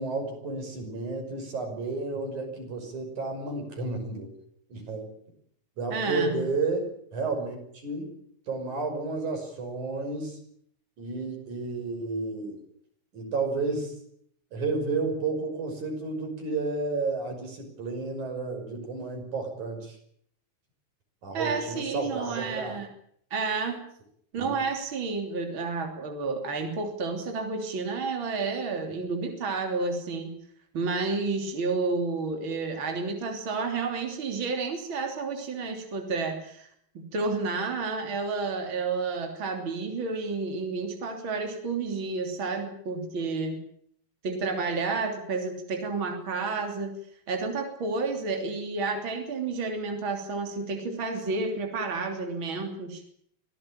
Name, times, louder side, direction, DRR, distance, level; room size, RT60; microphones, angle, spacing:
voice 1, 0.0-4.3 4.7-5.1 5.8-8.1 8.5-10.4 11.0-12.6 13.1-14.0 14.5-20.0 21.2-22.8 24.4-24.6, right 3 dB, 85° right, 4 dB, 7.4 m, -31 dB
voice 2, 5.9-6.4 21.3-22.9 23.3-23.8 24.3-30.4 30.7-36.7 37.0-43.6 44.2-47.0 47.3-53.0, right 4 dB, 45° right, 3 dB, 3.9 m, -30 dB
25.0 x 17.0 x 8.9 m, 0.68 s
omnidirectional pair, 3.3 m